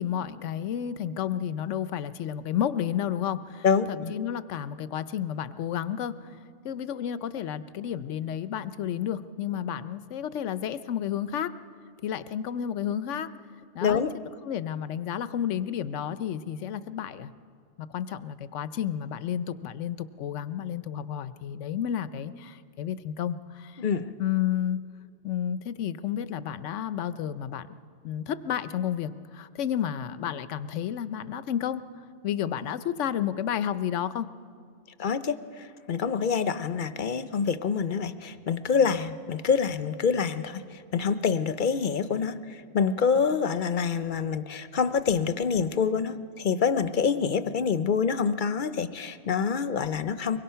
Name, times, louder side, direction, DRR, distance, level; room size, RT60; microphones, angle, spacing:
voice 1, 0.0-6.3 6.6-11.5 12.0-13.3 13.7-17.3 17.8-23.8 24.2-24.8 25.2-27.7 28.0-31.8 32.2-34.3, left 9 dB, 90° left, 14 dB, 1.0 m, -31 dB
voice 2, 3.6-4.1 13.8-14.1 23.8-24.1 35.0-50.4, left 6 dB, 50° left, 13 dB, 0.7 m, -26 dB
24.0 x 21.5 x 5.7 m, 2.3 s
omnidirectional pair, 1.2 m